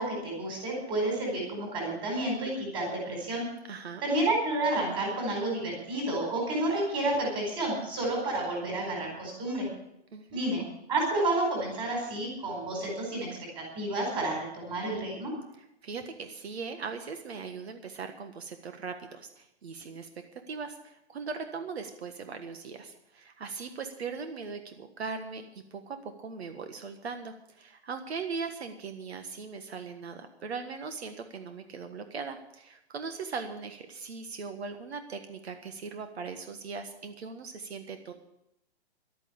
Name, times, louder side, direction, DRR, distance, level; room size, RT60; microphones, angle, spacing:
voice 1, 0.0-3.4 4.0-9.7 10.3-10.6 10.9-15.3, right 2 dB, 15° right, -1 dB, 4.6 m, -30 dB
voice 2, 3.7-4.0 10.1-10.4 15.6-25.5 25.7-38.1, right 5 dB, 70° right, 7 dB, 1.6 m, -39 dB
12.0 x 9.4 x 8.6 m, 0.81 s
hypercardioid pair, 170°, 33 cm